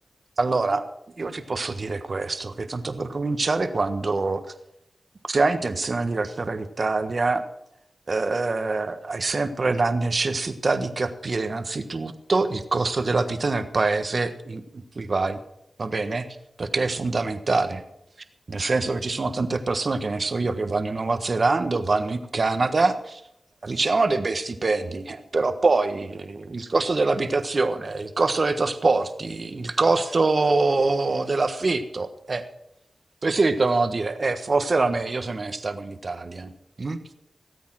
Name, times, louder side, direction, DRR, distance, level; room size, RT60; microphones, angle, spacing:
voice 1, 0.4-0.9 1.2-4.4 5.3-7.4 8.1-15.4 15.8-16.3 16.6-17.8 18.5-23.2 23.6-32.4 33.2-36.5 36.8-37.0, right 3 dB, 55° right, 10 dB, 1.4 m, -24 dB
18.0 x 8.5 x 6.2 m, 0.79 s
cardioid pair, 55°, 0 cm